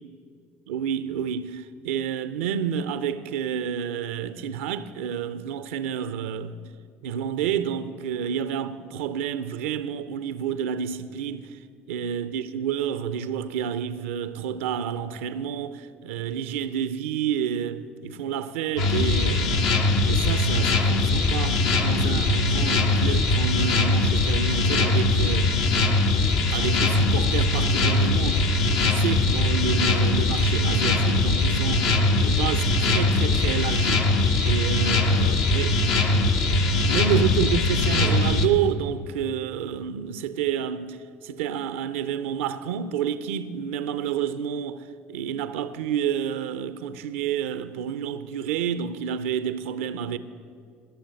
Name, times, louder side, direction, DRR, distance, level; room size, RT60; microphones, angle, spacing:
voice 1, 0.7-6.6 7.0-11.6 11.9-19.6 20.1-25.6 26.5-34.1 34.4-35.8 36.9-50.2, right 8 dB, 80° right, 0.5 m, -29 dB
sound 1, 18.8-38.5, left 2 dB, 70° left, 1.0 m, -21 dB
19.0 x 6.8 x 6.5 m
hypercardioid pair, 60°, 7 cm